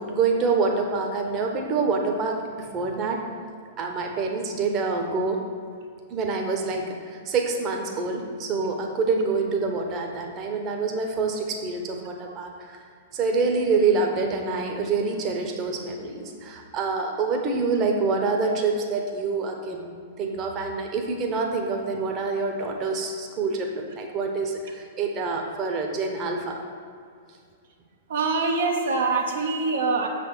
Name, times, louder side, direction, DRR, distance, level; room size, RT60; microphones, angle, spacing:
voice 1, 0.0-3.2 3.8-5.4 6.1-12.8 13.1-26.6, right 4 dB, 30° right, 2 dB, 1.0 m, -26 dB
voice 2, 28.1-30.1, right 4 dB, 60° right, 2 dB, 0.9 m, -24 dB
6.8 x 4.2 x 6.6 m, 2.2 s
figure-of-eight pair, 105°, 0 cm